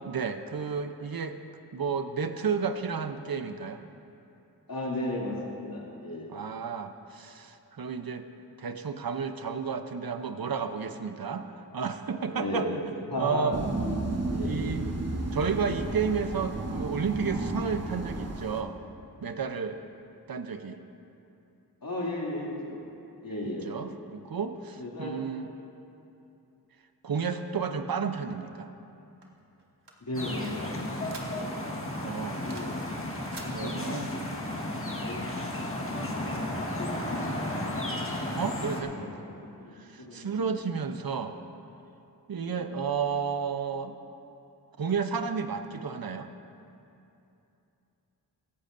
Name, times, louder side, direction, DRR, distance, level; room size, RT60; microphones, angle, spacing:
voice 1, 0.0-1.4 1.7-3.8 6.3-8.3 8.6-12.8 13.2-13.6 14.4-14.9 15.3-18.8 19.2-19.8 20.3-20.8 23.4-25.5 27.0-28.7 32.0-32.4 33.5-34.1 38.4-38.9 39.8-41.4 42.3-43.9 44.8-46.3, right 6 dB, 60° right, 8 dB, 0.8 m, -32 dB
voice 2, 4.7-6.3 11.3-11.4 12.3-12.8 13.1-13.5 14.1-14.5 21.8-22.8 23.2-23.6 24.8-25.1 30.0-31.5 32.4-32.8 33.4-34.2 34.5-35.2 35.8-37.5 38.2-38.3 38.8-39.2 39.6-40.5 42.4-42.6, left 1 dB, 60° left, -5 dB, 2.8 m, -36 dB
sound 1, 13.5-18.6, right 2 dB, 40° right, 1.1 m, -32 dB
sound 2, 29.2-31.7 32.0-32.8 33.1-33.5, right 3 dB, 90° right, 1.4 m, -48 dB
sound 3, 30.1-38.8, left 1 dB, 30° left, 1.6 m, -34 dB
17.0 x 14.5 x 2.7 m, 2.8 s
wide cardioid pair, 55°, 40 cm